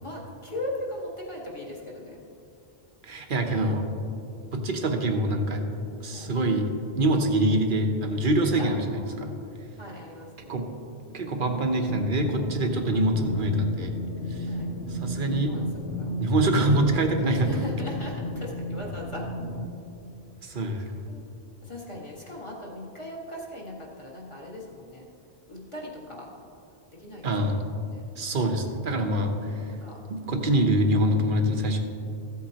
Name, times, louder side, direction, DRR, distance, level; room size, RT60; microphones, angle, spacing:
voice 1, 0.0-2.2 6.1-6.3 8.6-9.4 9.8-10.6 14.5-14.7 15.5-15.6 16.0-16.1 17.3-19.3 20.4-21.3 21.6-25.0 25.5-26.3 27.0-28.0 29.7-30.4, left 1 dB, 25° left, -4 dB, 1.7 m, -39 dB
voice 2, 3.0-3.9 4.5-5.7 6.0-6.7 7.0-8.8 9.2-9.3 10.5-10.7 11.1-13.9 14.3-14.5 14.9-15.6 16.2-17.5 20.4-20.8 27.2-27.6 28.2-29.7 30.1-31.8, right 1 dB, 50° right, 4 dB, 1.0 m, -25 dB
sound 1, 11.9-19.7, left 1 dB, 80° left, 1.2 m, -33 dB
15.0 x 8.3 x 2.9 m, 2.6 s
omnidirectional pair, 1.2 m